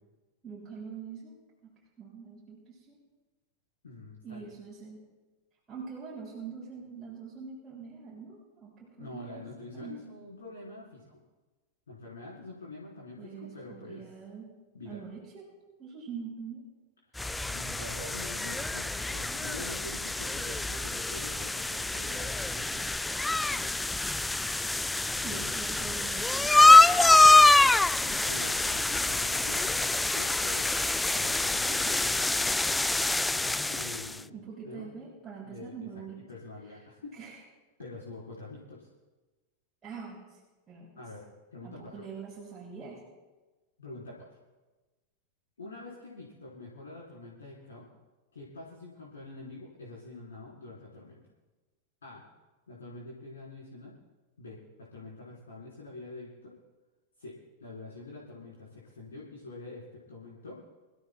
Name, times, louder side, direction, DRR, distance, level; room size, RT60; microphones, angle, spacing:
voice 1, 0.4-1.4 1.6-1.7 2.0-3.0 4.2-5.0 5.7-9.5 9.7-10.0 13.2-14.5 14.8-15.4 15.8-16.6 23.5-24.2 25.2-26.6 27.0-27.3 34.1-36.2 36.7-36.8 37.1-37.4 39.8-40.4 40.7-41.0 41.6-43.0, right 6 dB, 15° right, -7 dB, 6.0 m, -44 dB
voice 2, 3.8-4.5 9.0-11.2 11.9-14.1 14.7-15.0 17.0-23.0 25.3-25.5 27.9-30.7 31.1-32.5 33.3-34.4 34.6-35.0 35.4-35.9 36.3-37.1 37.8-38.9 40.9-42.1 43.8-44.4 45.6-47.9 48.3-51.2 52.0-52.2 52.7-53.9 54.4-56.5 57.2-59.8 60.1-60.6, left 2 dB, 70° left, -6 dB, 3.9 m, -45 dB
sound 1, 17.2-34.2, left 2 dB, 5° left, 0.3 m, -25 dB
26.5 x 15.5 x 2.3 m, 1.2 s
figure-of-eight pair, 90°, 0 cm